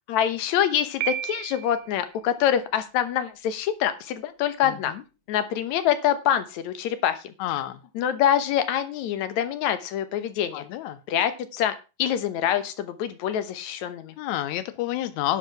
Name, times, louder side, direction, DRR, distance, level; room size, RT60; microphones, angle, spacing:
voice 1, 0.0-4.9 5.3-7.3 7.9-10.7 11.1-14.1, left 10 dB, 65° left, 11 dB, 2.0 m, -25 dB
Piano, 1.0-2.0, right 13 dB, 80° right, 1.7 m, -32 dB
voice 2, 4.6-5.0 7.4-7.8 10.5-11.0 14.2-15.4, left 13 dB, 85° left, 12 dB, 1.6 m, -29 dB
11.0 x 6.6 x 5.9 m, 0.31 s
omnidirectional pair, 4.3 m